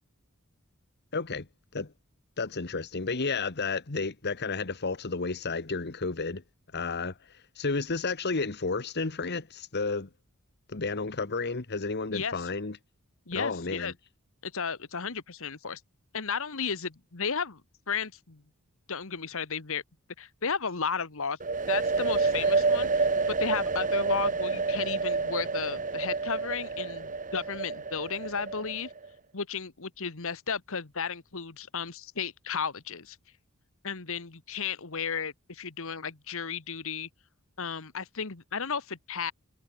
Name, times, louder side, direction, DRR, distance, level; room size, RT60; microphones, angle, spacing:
voice 1, 1.1-1.5 1.7-1.9 2.4-6.4 6.7-10.1 10.7-12.8 13.3-13.9, left 4 dB, 50° left, 1.3 m, -32 dB
voice 2, 12.1-12.5 13.3-13.9 14.4-15.8 16.1-17.6 17.9-18.4 18.9-19.8 20.2-21.4 21.7-28.9 29.3-33.2 33.8-37.1 37.6-39.3, left 6 dB, 65° left, 1.5 m, -34 dB
sound 1, 21.4-29.1, right 4 dB, 35° right, 1.5 m, -28 dB
head